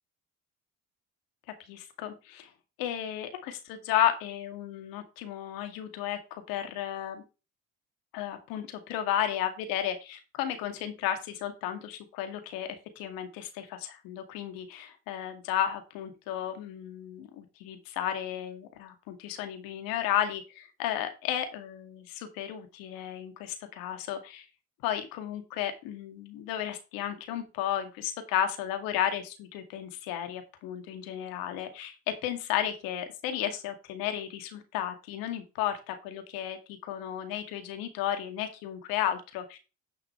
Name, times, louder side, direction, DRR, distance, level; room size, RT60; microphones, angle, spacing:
voice 1, 1.7-2.5 2.8-6.2 6.5-7.2 8.1-12.7 13.0-24.5 24.8-32.0 32.2-39.6, left 10 dB, 80° left, 7 dB, 2.1 m, -33 dB
10.5 x 5.8 x 4.4 m, 0.30 s
hypercardioid pair, 60°, 34 cm